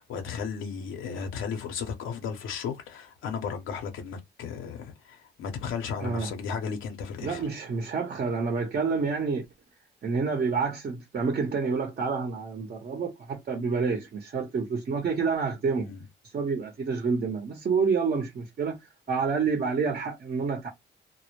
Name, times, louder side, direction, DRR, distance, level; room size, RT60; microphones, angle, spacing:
voice 1, 0.0-7.5 15.8-16.0, left 6 dB, 85° left, 0.7 m, -35 dB
voice 2, 6.0-6.3 7.2-9.4 10.0-15.9 16.3-18.8 19.1-20.7, right 5 dB, 50° right, 0.8 m, -28 dB
2.1 x 2.1 x 3.0 m
cardioid pair, 90°, 20 cm